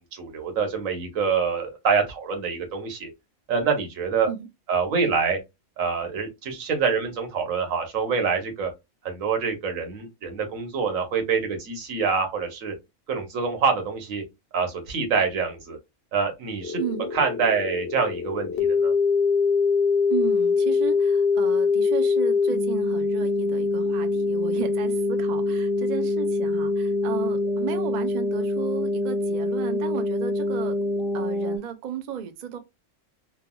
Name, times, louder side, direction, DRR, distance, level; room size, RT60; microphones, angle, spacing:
voice 1, 0.1-3.1 3.5-4.3 4.7-5.4 5.8-8.7 9.0-12.7 13.1-14.2 14.5-15.8 16.1-16.8 17.1-18.9, right 5 dB, 80° right, 1.3 m, -26 dB
sound 1, 16.6-31.6, left 3 dB, 50° left, 0.9 m, -24 dB
voice 2, 16.8-17.1 20.1-30.8 31.1-32.6, right 9 dB, 65° right, 0.4 m, -34 dB
3.1 x 2.3 x 2.2 m
omnidirectional pair, 1.4 m